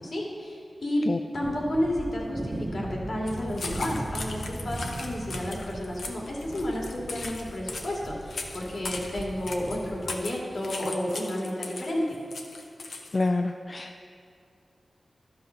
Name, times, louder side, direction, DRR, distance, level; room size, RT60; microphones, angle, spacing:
voice 1, 0.0-1.0 1.3-12.2, left 1 dB, 65° left, -2 dB, 2.3 m, -31 dB
sound 1, 1.4-10.1, right 1 dB, 45° right, 1.0 m, -39 dB
sound 2, 3.3-13.3, left 3 dB, 85° left, 0.8 m, -38 dB
voice 2, 13.1-14.0, left 2 dB, 50° left, 6 dB, 0.4 m, -27 dB
12.0 x 5.6 x 5.6 m, 2.4 s
cardioid pair, 40°, 0 cm